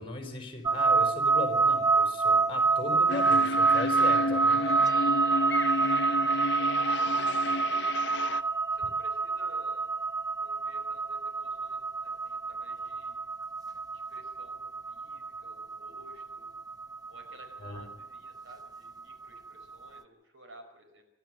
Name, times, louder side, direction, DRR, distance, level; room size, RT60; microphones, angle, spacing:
voice 1, 0.0-4.6 17.6-17.8, left 2 dB, 25° left, 4 dB, 4.3 m, -38 dB
sound 1, 0.7-19.7, right 4 dB, 20° right, 0.6 m, -27 dB
sound 2, 3.1-8.4, left 2 dB, 60° left, 0.9 m, -32 dB
voice 2, 5.7-7.9 8.7-9.9 10.4-13.3 13.9-16.5 17.1-21.0, right 1 dB, 80° right, 6 dB, 5.1 m, -55 dB
27.5 x 12.5 x 7.7 m, 0.88 s
head